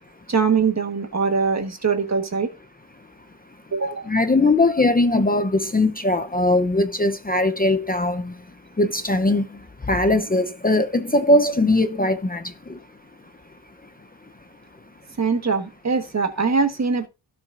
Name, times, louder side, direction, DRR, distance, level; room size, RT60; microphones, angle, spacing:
voice 1, 0.3-2.5 3.7-4.1 15.2-17.1, right 5 dB, 35° right, 1.4 m, -22 dB
voice 2, 4.1-8.4 8.8-12.8, left 2 dB, 20° left, 0.7 m, -20 dB
16.5 x 6.1 x 2.5 m
wide cardioid pair, 170°, 44 cm